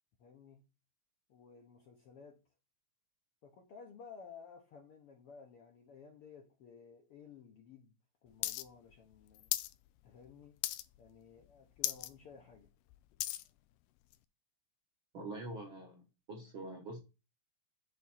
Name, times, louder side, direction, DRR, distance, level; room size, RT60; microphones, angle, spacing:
voice 1, 0.2-0.6 1.3-2.4 3.4-9.5 10.0-10.6 11.0-12.7, left 6 dB, 65° left, 1.4 m, -55 dB
sound 1, 8.4-8.6 8.9-9.7 10.1-10.3 10.6-11.1 11.4-11.5 11.8-12.1 12.5-13.5 14.1-14.2, left 15 dB, 90° left, 2.2 m, -36 dB
voice 2, 15.1-17.0, right 2 dB, 55° right, 1.5 m, -45 dB
9.1 x 3.7 x 4.3 m
omnidirectional pair, 3.8 m